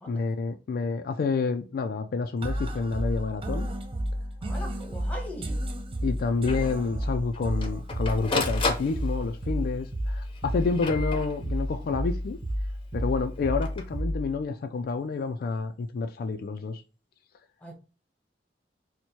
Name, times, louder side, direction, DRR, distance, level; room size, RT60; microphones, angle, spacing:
voice 1, 0.1-3.7 6.0-12.4 12.9-16.8, left 4 dB, 55° left, 0.3 m, -29 dB
sound 1, 2.4-14.4, equal, 30° right, 0.5 m, -31 dB
voice 2, 4.4-5.6 17.6-17.8, equal, 10° left, 1.0 m, -40 dB
Printer, 4.8-4.9 5.2-5.3 5.7-5.8 6.5-6.7 7.3-9.5 10.3-11.7 13.4-13.8, left 3 dB, 30° left, 0.7 m, -33 dB
4.4 x 2.1 x 2.7 m
head